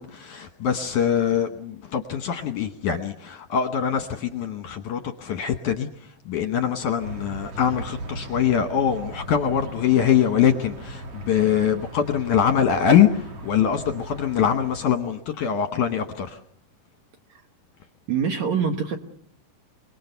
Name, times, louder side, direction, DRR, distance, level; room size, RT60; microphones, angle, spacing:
voice 1, 0.0-16.4, left 8 dB, 65° left, 7 dB, 2.1 m, -23 dB
sound 1, 7.0-14.8, right 1 dB, 45° right, 2.4 m, -38 dB
voice 2, 18.1-19.0, right 6 dB, 60° right, 5 dB, 2.1 m, -24 dB
27.0 x 20.5 x 6.8 m, 0.63 s
omnidirectional pair, 4.7 m